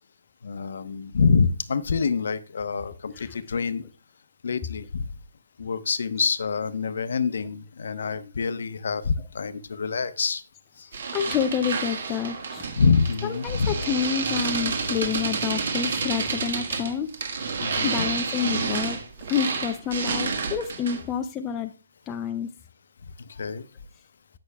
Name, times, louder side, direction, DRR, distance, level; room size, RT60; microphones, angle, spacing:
voice 1, 0.4-3.8 4.4-5.0 5.6-10.4 10.8-10.9 12.8-13.8 17.6-18.1 23.3-23.6, left 5 dB, 55° left, 13 dB, 0.8 m, -26 dB
sound 1, 10.9-21.1, right 5 dB, 45° right, 1.4 m, -29 dB
voice 2, 11.1-12.7 13.3-17.1 17.8-19.0 19.3-21.7 22.1-22.5, left 8 dB, 10° left, 5 dB, 0.4 m, -28 dB
16.5 x 6.1 x 2.2 m, 0.32 s
hypercardioid pair, 175°, 0 cm